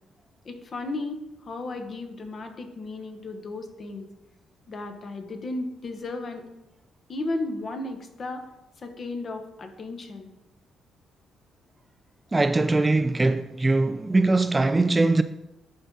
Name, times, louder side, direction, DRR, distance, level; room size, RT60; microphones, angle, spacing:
voice 1, 0.4-4.1 4.7-6.4 7.1-8.5 8.8-10.3, left 2 dB, 45° left, 1.1 m, -34 dB
voice 2, 12.3-15.2, right 2 dB, 20° right, 0.3 m, -21 dB
11.0 x 3.9 x 3.9 m
cardioid pair, 90°, 0 cm